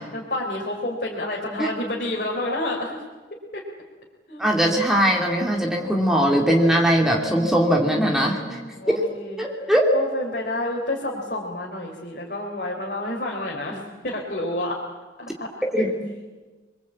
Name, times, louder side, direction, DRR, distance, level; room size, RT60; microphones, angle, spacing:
voice 1, 0.1-3.0 3.5-3.6 4.3-4.4 7.0-9.4 9.9-14.8 15.2-15.5 15.7-15.9, left 1 dB, 50° left, -2 dB, 3.8 m, -30 dB
voice 2, 4.4-8.6 8.9-9.0 9.4-9.9 15.6-16.1, equal, ahead, -1 dB, 2.7 m, -20 dB
28.0 x 22.0 x 8.6 m, 1.3 s
head